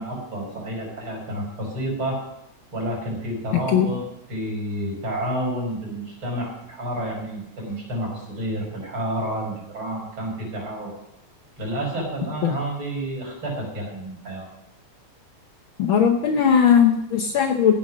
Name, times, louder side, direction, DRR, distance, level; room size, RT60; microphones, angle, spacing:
voice 1, 0.0-2.2 2.7-4.0 4.3-10.9 11.6-14.5, right 1 dB, 40° right, -1 dB, 6.0 m, -30 dB
voice 2, 3.5-3.9 12.4-12.5 15.8-17.7, left 8 dB, 75° left, 4 dB, 1.1 m, -18 dB
15.5 x 7.9 x 6.2 m, 0.80 s
omnidirectional pair, 3.4 m